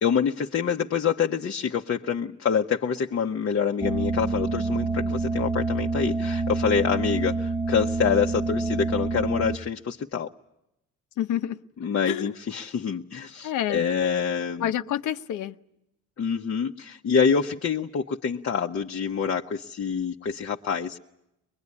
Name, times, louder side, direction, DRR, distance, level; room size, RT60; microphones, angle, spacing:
voice 1, 0.0-10.3 11.8-14.7 16.2-21.0, left 6 dB, 50° left, 1 dB, 1.0 m, -26 dB
sound 1, 3.8-9.6, right 3 dB, 10° right, 1.2 m, -27 dB
voice 2, 7.0-7.4 11.2-11.6 12.1-12.3 13.4-13.9 14.6-15.5, left 11 dB, 75° left, 10 dB, 1.0 m, -29 dB
23.0 x 22.0 x 9.7 m, 0.86 s
cardioid pair, 90°, 30 cm